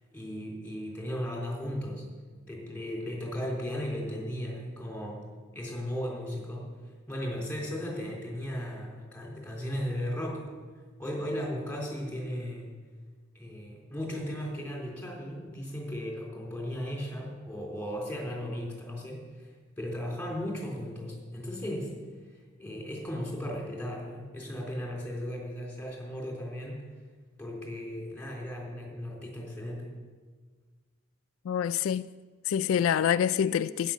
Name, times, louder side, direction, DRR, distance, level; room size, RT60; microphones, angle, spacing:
voice 1, 0.1-2.0 2.4-5.2 5.5-6.7 7.1-10.5 11.0-12.7 13.3-21.9 22.3-26.9 27.4-29.9, equal, 5° left, 3.7 m, -36 dB
voice 2, 31.5-32.1 32.5-33.9, left 9 dB, 80° left, 0.3 m, -26 dB
13.0 x 10.0 x 7.3 m
head